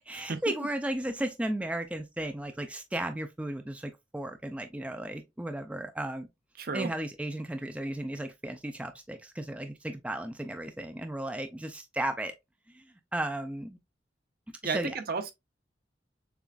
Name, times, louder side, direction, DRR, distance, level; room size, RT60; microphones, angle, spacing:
voice 1, 0.1-6.3 6.7-12.3 12.7-13.8 14.6-15.0, right 1 dB, 5° right, 0.4 m, -35 dB
voice 2, 6.6-6.9 14.6-15.3, right 4 dB, 55° right, 0.7 m, -33 dB
6.8 x 2.4 x 2.4 m
head